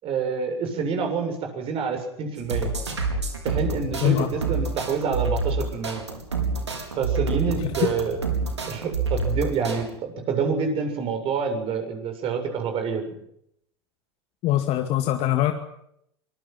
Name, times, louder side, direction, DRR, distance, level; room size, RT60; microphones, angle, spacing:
voice 1, 0.0-2.7 3.4-6.0 7.0-8.2 8.7-9.9 10.3-13.2, right 5 dB, 40° right, 5 dB, 7.6 m, -27 dB
sound 1, 2.4-9.8, right 3 dB, 90° right, 4.9 m, -28 dB
voice 2, 14.4-15.5, left 13 dB, 50° left, 6 dB, 2.2 m, -22 dB
25.0 x 22.0 x 6.1 m, 0.73 s
figure-of-eight pair, 85°, 14 cm